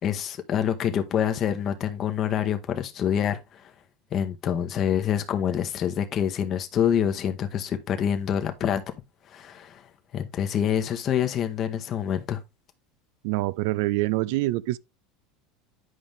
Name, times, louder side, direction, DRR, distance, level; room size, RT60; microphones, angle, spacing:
voice 1, 0.0-3.7 4.1-8.8 9.3-9.8 10.1-12.4, left 9 dB, 45° left, 1.2 m, -26 dB
voice 2, 13.2-14.8, right 18 dB, 70° right, 0.4 m, -25 dB
9.5 x 5.2 x 3.5 m
hypercardioid pair, 90°, 0 cm